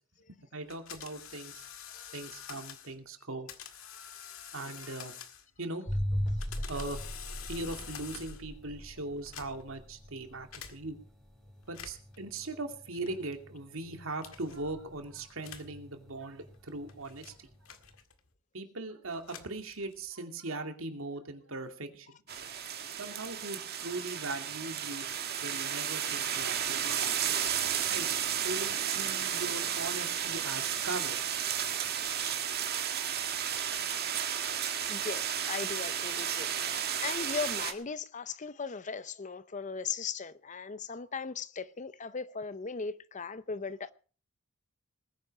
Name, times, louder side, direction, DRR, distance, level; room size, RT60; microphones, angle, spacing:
voice 1, 0.3-1.7 2.1-3.5 4.5-5.1 5.6-5.8 6.7-7.1 7.5-11.0 11.7-17.5 18.5-22.2 23.0-25.1 25.4-27.0 27.9-28.1 28.4-31.4, right 2 dB, 75° right, 2.5 m, -40 dB
sound 1, 0.7-3.0 3.5-5.6 6.2-8.5 9.2-9.8 10.5-10.8 11.6-12.2 13.1-13.4 14.2-14.6 15.4-15.8 16.5-18.3 19.1-20.1, left 8 dB, 75° left, 1.9 m, -47 dB
sound 2, 5.9-17.5, equal, ahead, 3.4 m, -39 dB
voice 2, 22.3-22.6 34.9-43.9, left 5 dB, 35° left, 0.6 m, -38 dB
sound 3, 22.3-37.7, right 9 dB, 50° right, 1.9 m, -33 dB
19.5 x 10.0 x 5.4 m
head